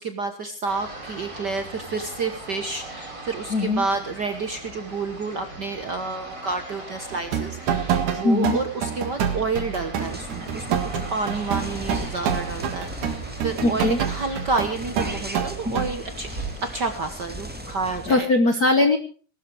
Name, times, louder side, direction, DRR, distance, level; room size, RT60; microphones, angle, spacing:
voice 1, 0.0-10.8 11.1-16.3 16.6-18.3, right 4 dB, 55° right, 7 dB, 1.2 m, -29 dB
sound 1, 0.7-17.0, right 2 dB, 25° right, 4.7 m, -40 dB
voice 2, 3.5-3.8 8.2-8.6 13.6-14.0 18.1-19.0, left 2 dB, 60° left, 7 dB, 1.0 m, -20 dB
sound 2, 7.1-15.9, right 8 dB, 85° right, 3.2 m, -27 dB
sound 3, 10.0-18.1, equal, 5° right, 1.0 m, -37 dB
19.0 x 12.5 x 4.7 m, 0.41 s
omnidirectional pair, 3.4 m